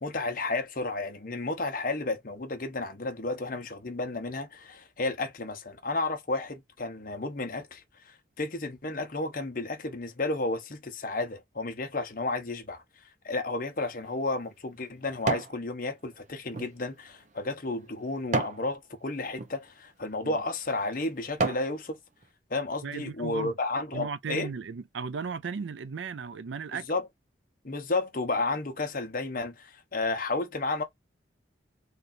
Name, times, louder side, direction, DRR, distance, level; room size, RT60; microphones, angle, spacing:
voice 1, 0.0-12.8 13.2-22.0 22.5-24.5 26.7-27.1 27.6-30.8, left 2 dB, 50° left, 1.0 m, -32 dB
sound 1, 13.7-15.6 16.1-18.7 19.3-19.5 20.2-20.4 20.9-21.7 22.2-22.3, right 3 dB, 40° right, 0.8 m, -33 dB
voice 2, 22.8-23.5 23.9-26.9, right 5 dB, 80° right, 0.5 m, -36 dB
3.3 x 2.6 x 4.2 m
head